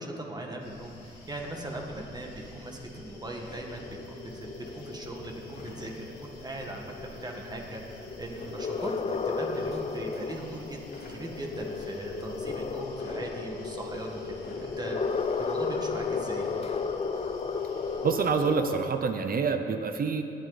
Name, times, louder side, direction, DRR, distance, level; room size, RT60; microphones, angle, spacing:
voice 1, 0.0-10.8 11.1-16.5, right 1 dB, 20° right, 1 dB, 1.8 m, -39 dB
sound 1, 0.6-18.5, left 2 dB, 85° left, 3.5 m, -50 dB
sound 2, 1.5-18.9, left 4 dB, 30° left, 0.7 m, -34 dB
sound 3, 3.4-3.8 5.4-5.8 8.2-8.6 10.7-11.2 12.9-13.3 14.3-14.7 16.3-16.6, left 2 dB, 55° left, 3.0 m, -48 dB
voice 2, 18.0-20.2, right 5 dB, 45° right, 7 dB, 0.8 m, -27 dB
19.5 x 8.2 x 4.1 m, 2.8 s
cardioid pair, 90°, 20 cm